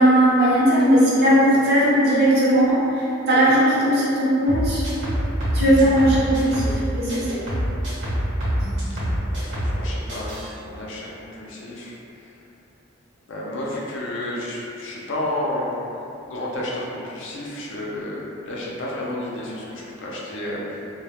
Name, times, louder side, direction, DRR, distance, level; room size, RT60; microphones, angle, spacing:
voice 1, 0.0-4.9 5.5-7.4, right 1 dB, 55° right, -8 dB, 0.6 m, -18 dB
sound 1, 4.5-6.8 7.1-9.8 10.1-10.5, equal, 70° right, 1.0 m, -25 dB
voice 2, 9.2-11.9 13.3-15.7 16.3-20.8, left 1 dB, 65° left, -4 dB, 0.4 m, -31 dB
2.1 x 2.0 x 2.8 m, 2.8 s
head